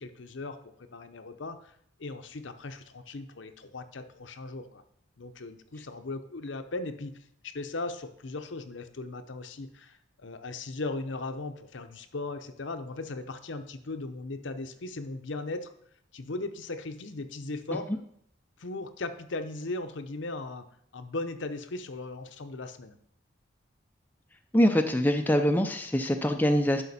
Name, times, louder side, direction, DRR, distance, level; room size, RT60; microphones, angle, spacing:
voice 1, 0.0-1.7 2.0-4.8 5.2-7.1 7.4-15.7 16.1-17.9 18.6-20.7 20.9-22.9, left 2 dB, 70° left, 9 dB, 0.7 m, -38 dB
voice 2, 24.5-26.8, equal, 10° left, 5 dB, 0.5 m, -24 dB
11.0 x 5.7 x 4.2 m, 0.69 s
head